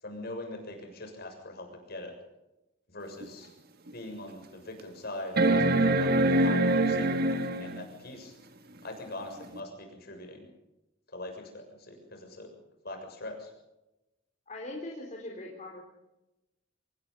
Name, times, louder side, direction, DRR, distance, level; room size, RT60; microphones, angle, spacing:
voice 1, 0.0-2.1 2.9-3.5 3.9-8.4 8.8-10.5 11.1-12.5 12.8-13.5, left 1 dB, 55° left, 4 dB, 7.0 m, -42 dB
sound 1, 3.2-3.3 3.9-4.0 5.4-7.8 9.5-9.6, right 2 dB, 50° right, 1.8 m, -24 dB
voice 2, 14.5-15.8, left 2 dB, 40° left, -1 dB, 4.2 m, -40 dB
25.5 x 19.5 x 5.6 m, 0.95 s
head